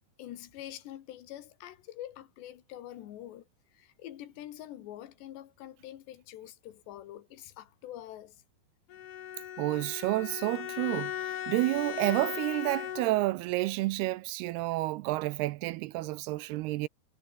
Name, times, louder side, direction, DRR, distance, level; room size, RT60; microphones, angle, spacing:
voice 1, 0.2-3.5 3.7-8.4, left 12 dB, 85° left, 3.8 m, -45 dB
Bowed string instrument, 8.9-13.4, left 10 dB, 55° left, 2.8 m, -38 dB
voice 2, 9.6-16.9, right 18 dB, 80° right, 2.5 m, -30 dB
omnidirectional pair, 4.9 m